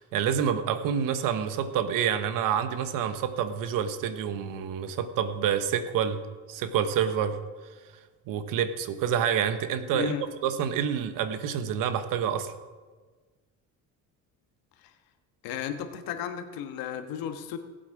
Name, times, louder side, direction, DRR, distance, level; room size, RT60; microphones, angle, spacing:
voice 1, 0.0-6.2 6.5-7.4 8.3-10.1 10.4-12.5, right 8 dB, 65° right, 10 dB, 1.2 m, -28 dB
voice 2, 9.9-10.2 14.8-14.9 15.4-17.6, left 8 dB, 75° left, 8 dB, 1.4 m, -34 dB
18.0 x 8.3 x 4.8 m, 1.4 s
cardioid pair, 135°, 35 cm